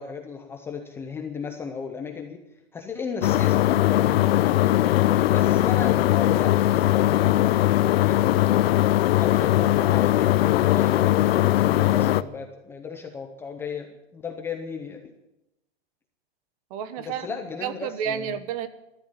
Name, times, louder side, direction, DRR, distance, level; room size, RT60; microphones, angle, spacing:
voice 1, 0.0-2.4 2.7-4.9 5.3-8.4 9.2-15.1 17.1-18.2, left 5 dB, 10° left, 4 dB, 0.6 m, -35 dB
sound 1, 3.2-12.2, left 14 dB, 75° left, 0.7 m, -20 dB
voice 2, 16.7-18.7, right 8 dB, 35° right, 13 dB, 1.2 m, -31 dB
14.0 x 11.5 x 8.3 m, 0.91 s
supercardioid pair, 175°, 31 cm